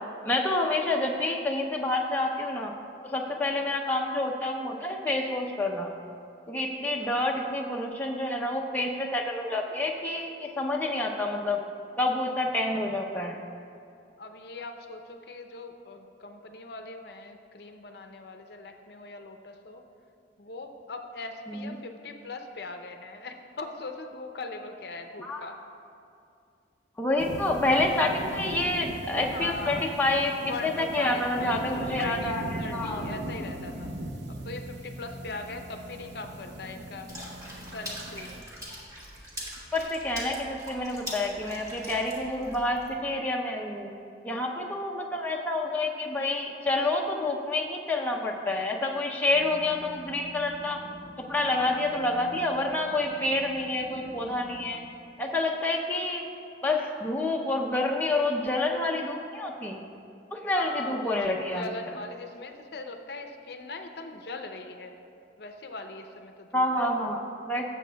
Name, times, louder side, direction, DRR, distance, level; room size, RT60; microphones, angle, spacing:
voice 1, 0.2-2.7 3.0-5.9 6.5-11.6 12.0-13.4 21.5-21.7 25.2-25.4 27.0-33.0 39.7-43.9 44.2-50.8 51.3-54.8 55.2-56.2 56.6-59.8 60.3-61.7 66.5-67.7, left 2 dB, 10° left, -1 dB, 0.6 m, -28 dB
voice 2, 6.9-7.4 14.2-19.8 20.4-25.6 29.2-29.9 30.5-33.9 34.3-37.1 37.7-38.4 44.6-44.8 60.4-65.1 65.4-66.9, left 3 dB, 60° left, 6 dB, 0.6 m, -40 dB
sound 1, 27.2-38.4, right 1 dB, 75° right, 0.8 m, -39 dB
Water / Splash splatter, 37.1-42.9, equal, 20° right, 1.5 m, -42 dB
sound 2, 49.3-54.7, equal, 55° right, 1.7 m, -47 dB
17.5 x 7.6 x 2.2 m, 2.5 s
head